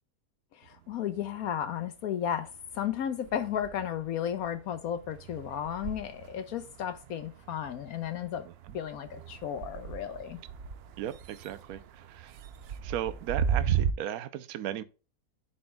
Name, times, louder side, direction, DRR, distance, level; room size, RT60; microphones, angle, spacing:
voice 1, 0.5-8.5 8.7-10.4, left 9 dB, 70° left, 1.1 m, -34 dB
sound 1, 0.7-1.9 2.2-13.9, right 8 dB, 90° right, 0.5 m, -37 dB
voice 2, 11.0-12.3 12.8-14.8, right 11 dB, 70° right, 1.1 m, -36 dB
11.0 x 4.3 x 2.2 m
omnidirectional pair, 1.7 m